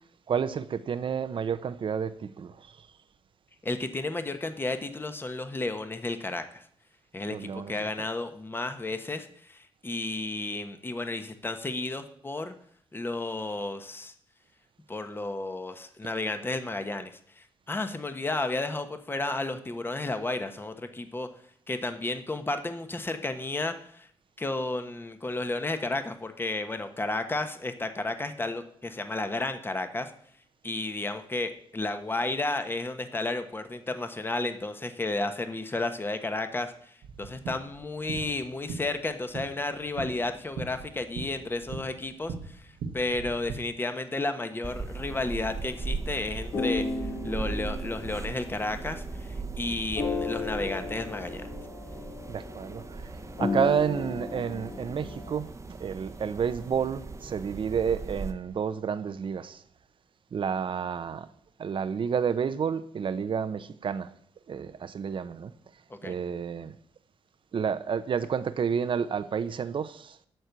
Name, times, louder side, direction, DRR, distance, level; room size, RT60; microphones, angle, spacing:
voice 1, 0.3-2.8 7.3-8.1 52.3-53.1 53.4-55.5 55.8-59.6 60.3-61.3 61.6-64.1 64.5-65.5 66.0-66.7 67.5-70.2, right 7 dB, 55° right, 0.9 m, -30 dB
voice 2, 3.6-6.6 7.1-12.5 12.9-14.1 14.9-21.3 21.7-24.1 24.4-30.1 30.6-36.9 37.2-51.5 65.9-66.1, left 2 dB, 20° left, 1.2 m, -32 dB
sound 1, 37.0-43.6, right 5 dB, 90° right, 1.5 m, -40 dB
sound 2, 44.6-58.3, right 4 dB, 30° right, 1.0 m, -39 dB
sound 3, 45.4-49.6 49.9-55.4, left 3 dB, 70° left, 3.3 m, -35 dB
12.5 x 4.5 x 8.2 m
cardioid pair, 65°, 10 cm